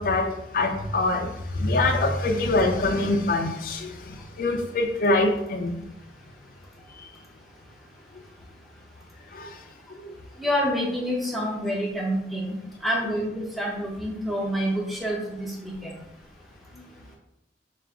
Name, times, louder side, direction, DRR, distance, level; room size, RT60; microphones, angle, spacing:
voice 1, 0.0-5.8 9.3-9.5, left 2 dB, 50° left, 2 dB, 0.4 m, -24 dB
voice 2, 10.4-16.0, equal, ahead, -3 dB, 0.6 m, -28 dB
4.7 x 2.4 x 3.5 m, 0.85 s
head